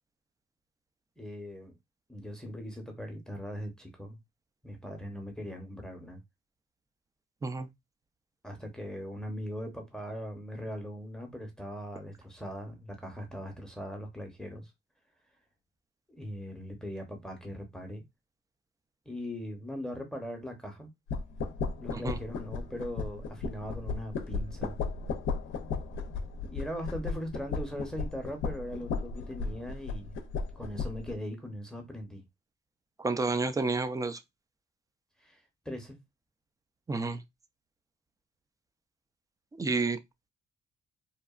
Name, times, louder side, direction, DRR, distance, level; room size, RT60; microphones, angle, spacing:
voice 1, 1.2-1.7 2.1-4.2 4.6-6.2 8.4-14.7 16.2-18.0 19.1-20.9 21.8-24.7 26.4-30.1 30.6-32.2 35.2-35.4 35.6-36.0, equal, 5° left, 0.7 m, -40 dB
sound 1, 21.1-31.2, left 4 dB, 80° left, 0.5 m, -35 dB
voice 2, 33.0-34.2 36.9-37.2 39.6-40.0, right 3 dB, 15° right, 0.3 m, -30 dB
2.8 x 2.3 x 2.3 m
cardioid pair, 90°, 20 cm